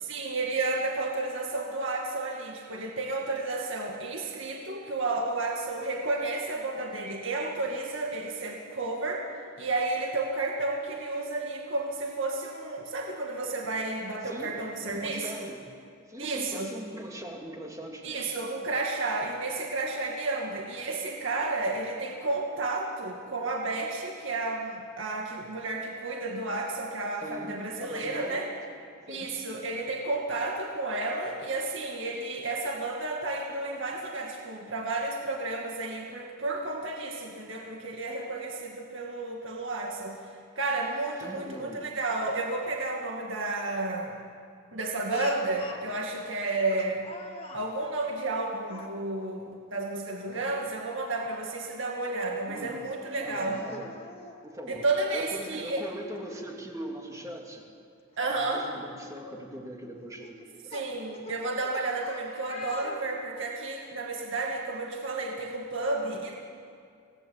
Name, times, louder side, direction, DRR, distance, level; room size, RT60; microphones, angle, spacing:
voice 1, 0.0-9.3 9.6-15.5 16.2-16.7 18.0-28.5 29.1-44.2 44.7-47.0 47.5-53.6 54.7-55.9 58.2-58.6 60.7-66.3, right 2 dB, 60° right, 0 dB, 2.2 m, -32 dB
voice 2, 14.2-15.7 16.1-18.2 18.6-18.7 27.2-28.5 29.1-29.3 41.2-41.8 52.4-52.9 53.1-54.0 54.4-57.7 58.2-60.7, right 1 dB, 15° right, 0 dB, 2.7 m, -41 dB
Speech, 45.1-45.9 46.7-47.7 48.6-48.9 50.2-50.4 50.9-51.0 52.6-52.7 53.5-54.4 55.7-55.8 56.2-56.3 58.1-58.2 58.9-59.1 60.2-63.5, left 2 dB, 25° left, 2.0 m, -44 dB
26.0 x 19.0 x 8.7 m, 2.4 s
head